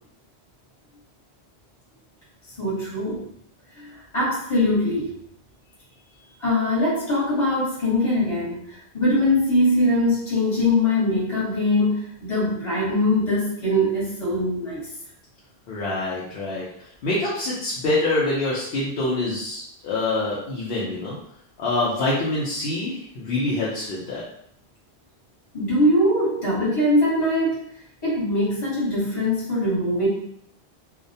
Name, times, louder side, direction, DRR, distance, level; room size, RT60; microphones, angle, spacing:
voice 1, 2.6-3.3 3.7-5.1 6.4-14.9 25.5-27.6 28.0-30.1, left 1 dB, 30° left, -7 dB, 1.1 m, -22 dB
voice 2, 15.7-16.7 17.0-21.1 21.6-24.2, left 2 dB, 65° left, -6 dB, 0.8 m, -25 dB
2.3 x 2.1 x 2.6 m, 0.71 s
omnidirectional pair, 1.1 m